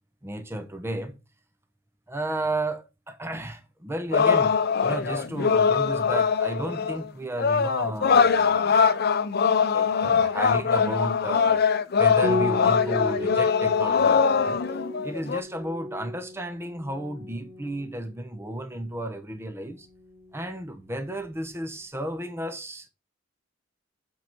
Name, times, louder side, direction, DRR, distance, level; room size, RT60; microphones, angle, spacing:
voice 1, 0.2-1.1 2.1-9.0 9.7-11.6 11.9-14.6 15.0-19.9 20.3-22.9, right 1 dB, 15° right, 0.8 m, -33 dB
sound 1, 4.1-7.1 7.4-15.4, left 6 dB, 55° left, 0.6 m, -22 dB
Piano, 12.2-21.5, left 1 dB, 90° right, 1.8 m, -36 dB
8.1 x 4.6 x 4.4 m
head